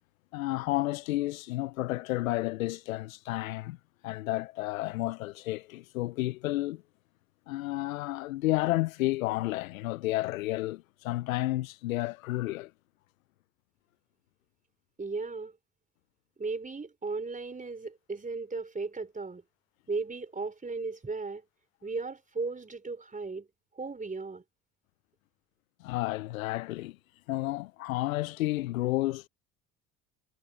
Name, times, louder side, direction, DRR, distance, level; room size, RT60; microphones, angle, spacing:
voice 1, 0.3-3.8 4.0-6.8 7.5-12.7 25.8-27.0 27.3-29.3, left 17 dB, 90° left, 0.5 m, -31 dB
voice 2, 15.0-15.5 16.4-19.4 19.9-21.4 21.8-23.5 23.8-24.4, right 3 dB, 20° right, 3.9 m, -36 dB
hypercardioid pair, 65°, 39 cm